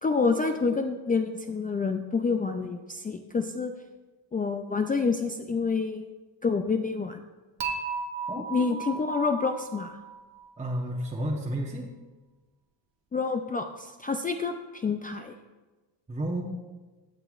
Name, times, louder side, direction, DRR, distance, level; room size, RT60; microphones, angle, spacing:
voice 1, 0.0-3.7 4.3-6.1 6.4-7.2 8.5-10.0 13.1-15.3, left 4 dB, 20° left, 4 dB, 0.4 m, -28 dB
Dishes pots and pans / Chink clink, 7.6-10.8, right 5 dB, 65° right, 1.1 m, -35 dB
voice 2, 8.3-8.8 10.6-11.9 16.1-16.4, right 1 dB, 15° right, -2 dB, 1.0 m, -32 dB
14.0 x 6.8 x 2.4 m, 1.2 s
cardioid pair, 95°, 47 cm